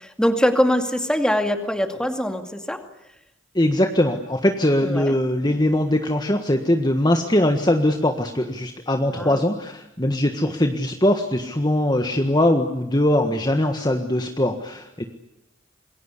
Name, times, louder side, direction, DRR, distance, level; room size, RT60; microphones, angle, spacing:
voice 1, 0.0-2.8 4.8-5.2 9.1-9.5, equal, 5° left, 6 dB, 2.4 m, -23 dB
voice 2, 3.5-15.1, left 1 dB, 20° left, 5 dB, 1.6 m, -21 dB
27.0 x 22.0 x 8.4 m, 0.85 s
head